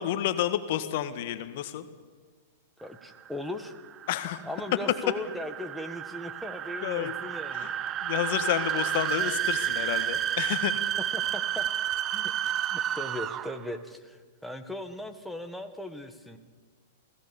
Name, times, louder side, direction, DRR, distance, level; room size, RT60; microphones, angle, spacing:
voice 1, 0.0-1.9 4.1-4.4 4.9-5.0 6.8-7.1 7.5-7.7 8.0-10.8, left 12 dB, 60° left, 10 dB, 1.6 m, -30 dB
voice 2, 2.8-3.7 4.4-7.7 11.1-11.6 12.1-12.3 12.7-16.4, left 1 dB, ahead, 4 dB, 1.7 m, -38 dB
sound 1, 3.0-13.7, right 11 dB, 30° right, 0.8 m, -31 dB
24.0 x 17.0 x 7.1 m, 1.5 s
hypercardioid pair, 120°, 0 cm